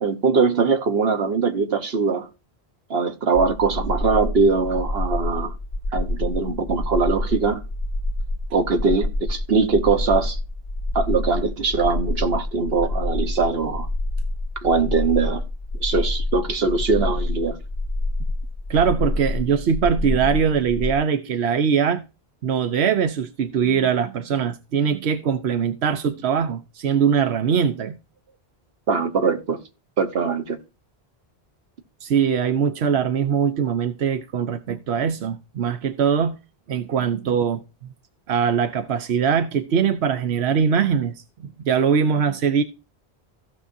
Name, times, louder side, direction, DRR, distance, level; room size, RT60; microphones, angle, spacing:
voice 1, 0.0-2.3 2.9-5.5 5.9-7.6 8.5-10.4 10.9-13.9 14.6-15.4 15.8-17.6 28.9-29.6 30.0-30.6, right 4 dB, 70° right, 1.5 m, -21 dB
sound 1, 3.3-20.9, left 1 dB, 20° left, 0.9 m, -27 dB
voice 2, 18.7-22.0 22.4-27.9 32.0-36.4 36.7-37.6 38.3-41.1 41.6-42.6, right 7 dB, 90° right, 1.0 m, -21 dB
15.5 x 6.6 x 2.7 m
omnidirectional pair, 1.1 m